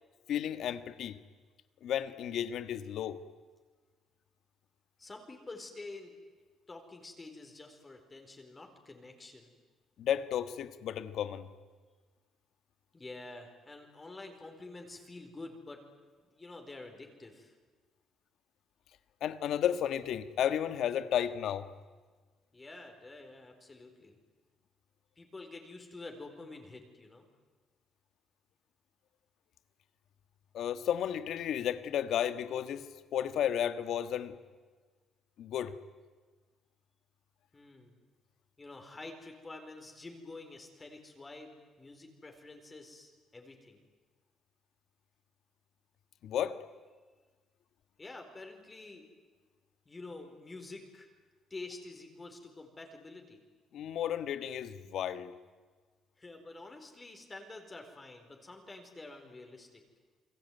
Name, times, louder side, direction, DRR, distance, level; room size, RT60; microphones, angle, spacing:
voice 1, 0.3-1.2 1.8-3.2 10.0-11.5 19.2-21.7 30.5-34.4 35.4-35.7 46.2-46.6 53.7-55.3, left 10 dB, 70° left, 12 dB, 1.5 m, -33 dB
voice 2, 5.0-6.1 6.7-9.5 12.9-15.8 16.3-17.5 22.5-24.2 25.2-27.2 37.5-37.9 38.6-43.8 48.0-49.0 49.9-51.1 51.5-53.4 56.2-59.8, left 2 dB, 25° left, 3 dB, 4.5 m, -48 dB
29.0 x 21.5 x 9.4 m, 1.4 s
cardioid pair, 100°, 0 cm